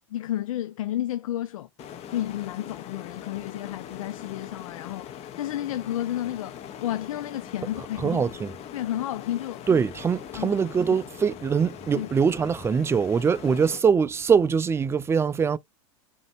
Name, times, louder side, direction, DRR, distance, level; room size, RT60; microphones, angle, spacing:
voice 1, 0.1-1.7 2.1-8.2 8.7-9.6 10.3-10.5 11.9-12.1, left 12 dB, 75° left, 0.5 m, -31 dB
sound 1, 1.8-13.8, left 10 dB, 40° left, 1.1 m, -42 dB
voice 2, 8.0-8.5 9.7-15.6, right 6 dB, 15° right, 0.4 m, -23 dB
5.0 x 2.9 x 2.9 m
hypercardioid pair, 100°, 17 cm